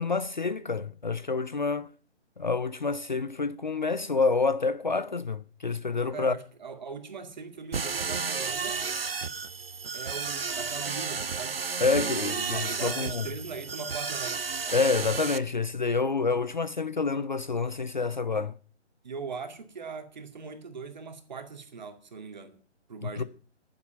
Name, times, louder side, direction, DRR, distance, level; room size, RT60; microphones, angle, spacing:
voice 1, 0.0-1.9 2.4-6.3 11.8-13.3 14.7-18.5 23.0-23.2, left 4 dB, 40° left, 0.6 m, -28 dB
voice 2, 6.1-8.8 9.9-14.4 19.0-22.6 22.9-23.2, right 5 dB, 40° right, 2.2 m, -40 dB
sound 1, 7.7-15.4, right 5 dB, 55° right, 1.0 m, -32 dB
11.0 x 10.0 x 7.6 m
figure-of-eight pair, 150°, 35 cm